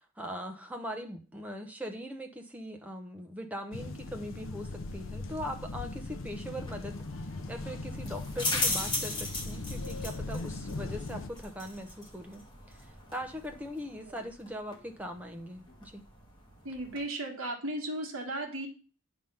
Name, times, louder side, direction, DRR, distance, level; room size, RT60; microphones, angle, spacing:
voice 1, 0.0-16.0, equal, 5° right, 4 dB, 0.7 m, -41 dB
sound 1, 3.7-11.3, left 2 dB, 60° left, 0.6 m, -39 dB
sound 2, 6.4-17.0, left 2 dB, 20° left, 1.6 m, -38 dB
voice 2, 16.6-18.7, right 1 dB, 70° right, 0 dB, 1.7 m, -35 dB
9.2 x 3.6 x 5.5 m, 0.38 s
head